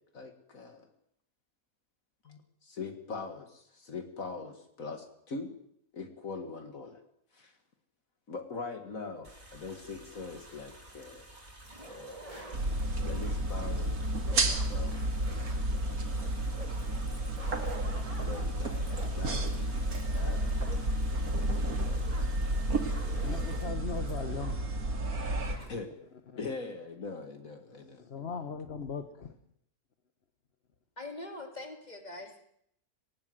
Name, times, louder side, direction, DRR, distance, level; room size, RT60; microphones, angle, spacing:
voice 1, 0.1-0.9 2.2-5.5 5.9-7.0 7.3-7.5 8.3-11.2 11.8-12.5 12.9-14.0 14.2-16.1 18.1-19.7 20.1-20.6 25.6-25.9 26.4-28.0, left 4 dB, 65° left, 6 dB, 2.3 m, -42 dB
sound 1, 9.2-23.6, right 1 dB, 45° right, 4.9 m, -51 dB
sound 2, 11.6-24.8 25.0-25.1 25.4-25.7, right 1 dB, 20° right, 3.8 m, -50 dB
sound 3, 12.5-25.6, right 1 dB, 75° right, 2.6 m, -31 dB
voice 2, 23.2-24.6 24.9-25.7 27.7-29.3, left 6 dB, 45° left, 8 dB, 1.3 m, -40 dB
voice 3, 31.0-32.4, left 2 dB, 25° left, 4 dB, 3.5 m, -42 dB
19.0 x 18.5 x 7.9 m, 0.71 s
omnidirectional pair, 1.6 m